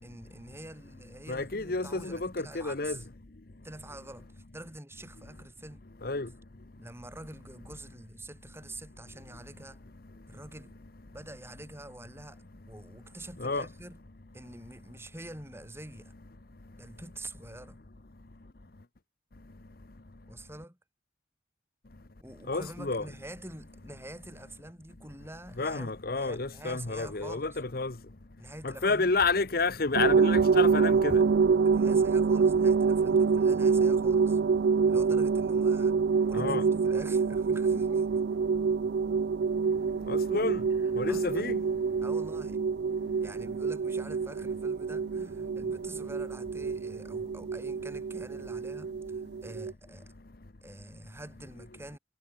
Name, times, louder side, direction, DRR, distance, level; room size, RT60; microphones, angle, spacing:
voice 1, 0.0-3.1 3.6-5.8 6.8-9.8 10.3-10.8 11.1-14.0 14.3-16.1 16.7-17.8 20.3-20.8 22.2-27.6 28.4-29.1 31.6-34.4 34.9-36.0 36.3-38.2 40.8-41.5 42.0-42.6 43.2-50.1 50.6-52.0, right 1 dB, 15° right, 5.2 m, -46 dB
voice 2, 1.3-3.0 6.0-6.3 13.4-13.7 22.5-23.0 25.6-27.9 28.6-31.2 36.3-36.6 40.1-40.6 41.0-41.6, left 3 dB, 50° left, 1.0 m, -30 dB
sound 1, 29.9-49.7, right 5 dB, 60° right, 0.4 m, -26 dB
head